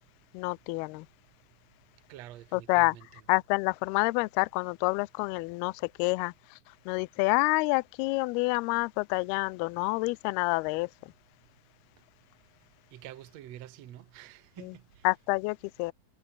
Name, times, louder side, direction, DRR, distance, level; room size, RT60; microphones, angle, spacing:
voice 1, 0.3-1.1 2.5-3.0 3.3-5.7 6.0-6.3 6.9-10.9 15.0-15.9, left 26 dB, 85° left, 2.3 m, -28 dB
voice 2, 2.1-3.2 12.9-15.1, right 13 dB, 80° right, 1.5 m, -47 dB
omnidirectional pair, 5.0 m